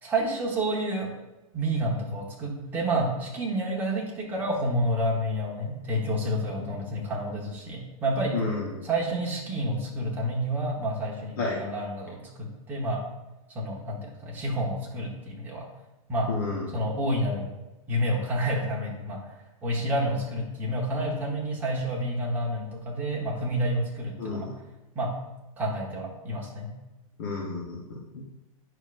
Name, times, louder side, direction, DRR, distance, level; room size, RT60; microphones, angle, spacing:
voice 1, 0.0-1.1 1.5-8.4 8.8-13.0 13.5-15.7 16.1-16.3 16.7-17.6 17.9-19.3 19.6-24.5 24.9-25.1 25.6-26.7, right 1 dB, 10° right, -3 dB, 1.1 m, -29 dB
voice 2, 8.3-8.9 11.4-11.6 16.3-16.8 24.2-24.5 27.2-28.3, left 3 dB, 35° left, -3 dB, 1.0 m, -31 dB
9.0 x 6.1 x 2.5 m, 1.1 s
supercardioid pair, 175°, 18 cm